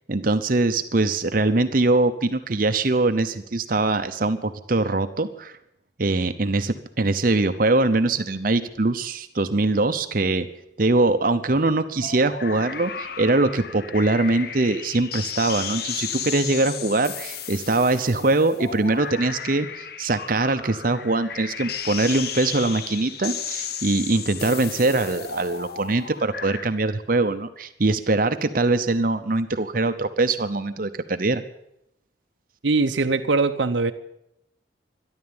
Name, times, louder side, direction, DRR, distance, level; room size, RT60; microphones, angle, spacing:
voice 1, 0.1-5.5 6.0-10.5 10.8-31.4, right 2 dB, 45° right, 9 dB, 0.8 m, -22 dB
sound 1, 12.0-26.6, left 7 dB, 55° left, 0.7 m, -34 dB
voice 2, 32.6-33.9, right 3 dB, 75° right, 7 dB, 0.7 m, -21 dB
13.0 x 11.5 x 8.8 m, 0.79 s
head